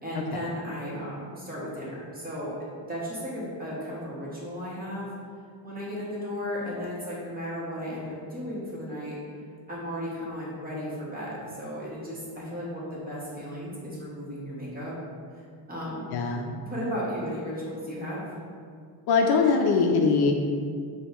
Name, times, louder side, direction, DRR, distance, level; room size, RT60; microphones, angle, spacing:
voice 1, 0.0-2.5 2.9-5.1 5.6-9.1 9.7-14.9 15.3-16.1 16.6-18.2, equal, 20° right, -7 dB, 1.1 m, -35 dB
voice 2, 16.1-16.4 19.1-20.3, left 4 dB, 60° left, 1 dB, 0.5 m, -22 dB
5.0 x 2.3 x 3.0 m, 2.2 s
cardioid pair, 110°, 45 cm